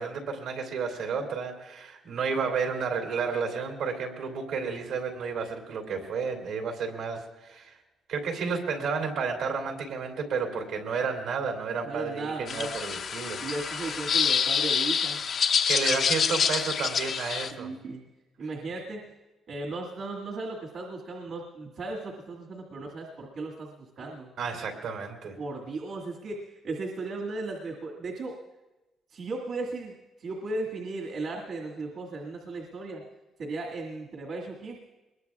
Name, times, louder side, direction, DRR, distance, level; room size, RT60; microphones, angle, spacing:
voice 1, 0.0-7.8 8.1-13.4 15.7-17.7 18.4-18.5 24.4-25.4, right 5 dB, 85° right, 2 dB, 3.0 m, -31 dB
voice 2, 11.8-12.7 13.4-15.2 17.5-18.0 18.4-19.1 19.5-24.3 25.4-28.4 29.1-33.0 33.4-34.8, right 3 dB, 65° right, -2 dB, 2.0 m, -36 dB
sound 1, 12.5-17.5, left 7 dB, 60° left, 0.8 m, -27 dB
22.0 x 21.0 x 2.4 m, 1.1 s
cardioid pair, 90°, 0 cm